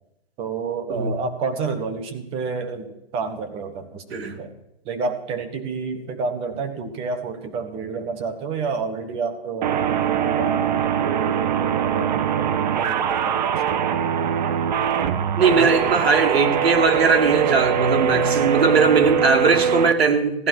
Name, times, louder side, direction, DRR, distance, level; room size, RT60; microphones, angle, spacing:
voice 1, 0.4-4.5 4.8-13.8 15.5-15.7, right 4 dB, 20° right, 7 dB, 1.2 m, -30 dB
sound 1, 9.6-19.9, right 8 dB, 45° right, 1.0 m, -22 dB
voice 2, 15.4-20.5, right 4 dB, 80° right, 5 dB, 2.4 m, -19 dB
15.5 x 11.0 x 6.1 m, 0.84 s
hypercardioid pair, 155°, 31 cm